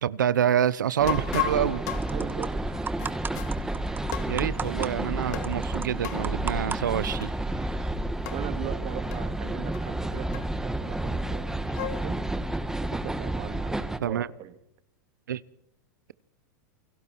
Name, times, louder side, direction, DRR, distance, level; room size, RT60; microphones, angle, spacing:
voice 1, 0.0-1.8 4.3-7.3 14.0-14.3 15.3-15.4, right 9 dB, 85° right, 18 dB, 0.9 m, -27 dB
sound 1, 1.0-14.0, right 1 dB, 5° right, 1.5 m, -31 dB
sound 2, 1.1-3.6 4.1-4.8 5.3-5.6 6.0-6.3 7.2-7.4 7.6-7.7 8.3-8.5 9.1-9.2 9.7-9.8 10.3-10.8 11.4-12.1, left 11 dB, 65° left, 2.2 m, -35 dB
sound 3, 1.4-7.9, right 6 dB, 20° right, 1.4 m, -39 dB
voice 2, 2.1-2.5 8.3-12.2 12.8-14.6, right 11 dB, 45° right, 8 dB, 3.3 m, -39 dB
29.0 x 23.0 x 4.6 m, 0.73 s
hypercardioid pair, 110°, 10 cm